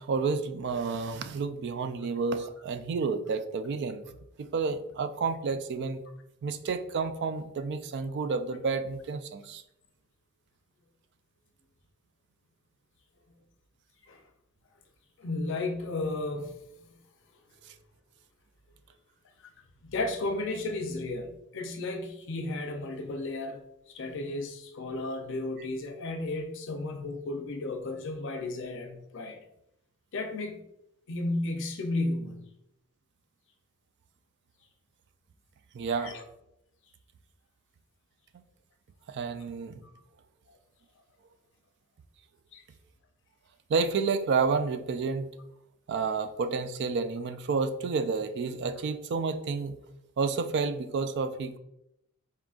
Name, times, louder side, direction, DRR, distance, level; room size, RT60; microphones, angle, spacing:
voice 1, 0.0-4.0 4.4-6.0 6.4-9.6 35.7-36.1 39.1-39.8 43.7-45.3 45.9-49.8 50.2-51.6, right 4 dB, 50° right, 0.3 m, -30 dB
voice 2, 15.2-16.5 16.8-16.9 19.8-23.6 23.9-29.4 30.1-30.6 31.1-32.4 35.9-36.2 42.5-42.6, left 2 dB, 60° left, 0.6 m, -33 dB
4.5 x 3.7 x 2.4 m
head